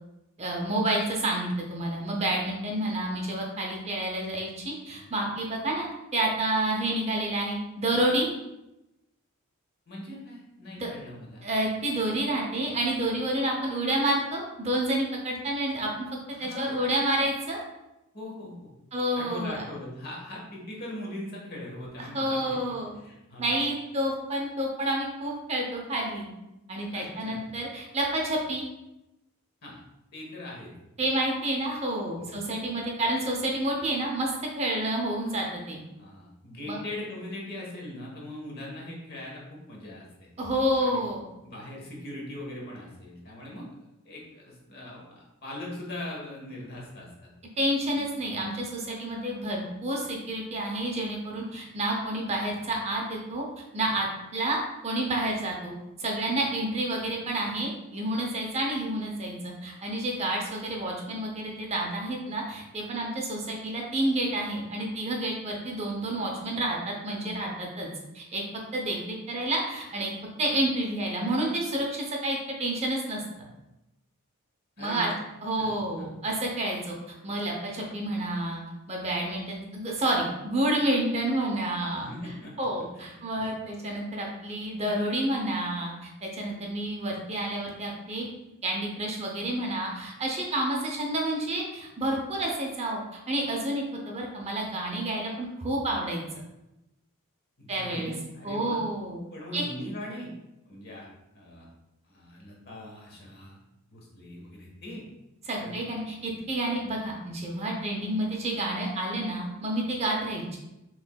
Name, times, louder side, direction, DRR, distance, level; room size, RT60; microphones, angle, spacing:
voice 1, 0.4-8.3 10.8-10.9 11.4-15.9 16.4-17.6 18.9-19.6 22.0-23.0 23.4-26.3 26.7-28.7 31.0-35.8 36.7-36.8 40.4-41.2 47.6-53.4 53.7-54.1 54.3-55.7 56.0-67.9 68.1-68.4 68.7-70.1 70.4-73.2 74.8-75.1 75.4-78.6 78.9-82.1 82.6-88.3 88.6-96.2 97.7-98.1 98.4-99.2 99.5-99.6 105.5-110.6, right 1 dB, 30° right, -1 dB, 0.6 m, -29 dB
voice 2, 9.9-11.5 16.3-17.3 18.1-18.7 19.1-23.6 26.9-27.5 29.6-29.8 30.1-30.7 32.2-32.4 36.0-40.0 40.8-41.0 41.4-43.7 44.0-47.3 47.9-48.1 74.8-75.2 75.5-76.1 82.0-82.5 83.0-83.5 97.6-98.8 99.3-100.3 100.7-101.1 101.3-101.7 102.1-103.6 103.9-105.0 105.6-105.8, left 1 dB, 45° left, -3 dB, 1.1 m, -40 dB
6.1 x 3.1 x 2.2 m, 0.95 s
head